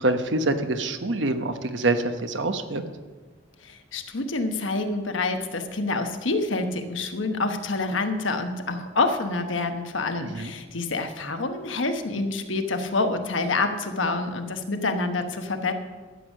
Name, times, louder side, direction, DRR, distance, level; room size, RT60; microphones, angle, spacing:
voice 1, 0.0-2.8 10.2-10.5, right 2 dB, 70° right, 8 dB, 1.0 m, -25 dB
voice 2, 3.6-15.7, left 3 dB, 85° left, 7 dB, 1.2 m, -27 dB
12.5 x 8.1 x 6.5 m, 1.3 s
head